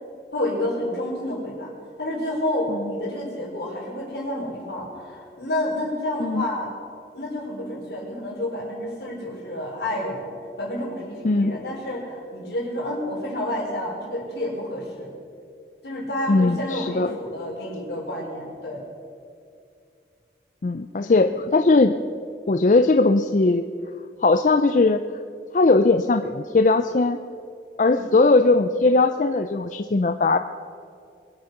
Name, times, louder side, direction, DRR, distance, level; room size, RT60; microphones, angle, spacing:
voice 1, 0.3-1.7 2.0-6.7 7.1-10.3 10.6-15.1 15.8-18.8 21.1-21.4 27.8-28.1, left 1 dB, 75° left, -3 dB, 4.8 m, -29 dB
voice 2, 11.2-11.6 16.3-17.1 20.6-21.9 22.5-23.6 24.2-25.0 25.5-27.2 27.8-30.4, left 3 dB, 45° left, 9 dB, 0.4 m, -19 dB
22.5 x 8.1 x 6.5 m, 2.4 s
head